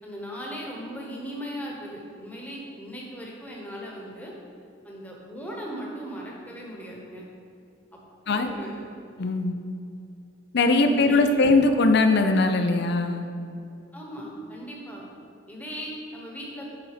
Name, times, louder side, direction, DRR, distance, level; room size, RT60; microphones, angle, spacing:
voice 1, 0.0-4.3 4.8-7.3 8.2-8.9 10.8-11.2 13.9-15.0 15.5-16.7, equal, 10° left, -3 dB, 1.2 m, -38 dB
voice 2, 9.2-9.6 10.5-13.3, left 3 dB, 60° left, 7 dB, 0.5 m, -20 dB
8.3 x 4.2 x 5.0 m, 2.6 s
head